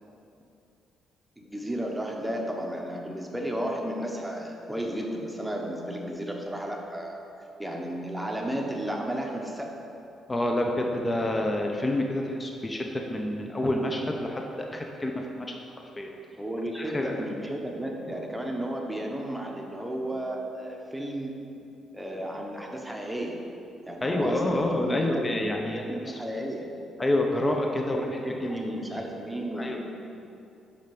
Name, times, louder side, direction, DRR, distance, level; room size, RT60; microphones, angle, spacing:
voice 1, 1.4-7.2 7.6-9.7 16.4-21.3 21.9-23.4 23.9-25.2 25.7-26.7 27.9-29.8, right 1 dB, 5° right, 0 dB, 0.9 m, -33 dB
voice 2, 10.3-15.5 16.0-16.1 16.7-17.2 24.0-26.2 27.0-28.6 28.9-29.0 29.6-29.8, left 1 dB, 20° left, 1 dB, 0.6 m, -28 dB
5.6 x 5.0 x 5.3 m, 2.7 s
cardioid pair, 90°, 0 cm